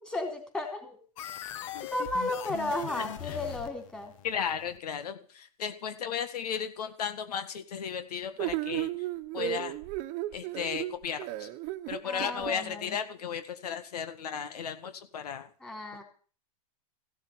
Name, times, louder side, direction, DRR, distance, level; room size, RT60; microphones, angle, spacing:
voice 1, 0.0-1.0 1.9-4.1 12.0-13.0 15.6-16.0, left 2 dB, 5° left, 3 dB, 3.7 m, -34 dB
sound 1, 1.2-4.8, left 11 dB, 55° left, 1.3 m, -40 dB
voice 2, 4.2-8.9 9.3-9.7 10.3-11.5 11.9-15.5, left 7 dB, 85° left, 10 dB, 1.8 m, -35 dB
sound 2, 8.4-12.5, right 15 dB, 40° right, 1.2 m, -34 dB
15.5 x 7.6 x 8.7 m, 0.41 s
supercardioid pair, 145°, 19 cm